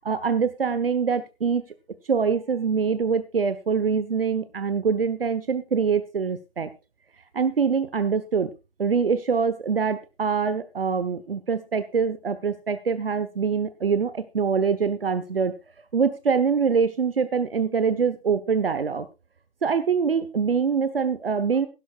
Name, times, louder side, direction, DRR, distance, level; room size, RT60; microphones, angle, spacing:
voice 1, 0.0-1.6 2.1-6.7 7.3-8.5 8.8-15.6 15.9-19.1 19.6-21.7, right 6 dB, 65° right, 12 dB, 1.3 m, -24 dB
16.0 x 12.0 x 2.5 m, 0.28 s
figure-of-eight pair, 155°, 31 cm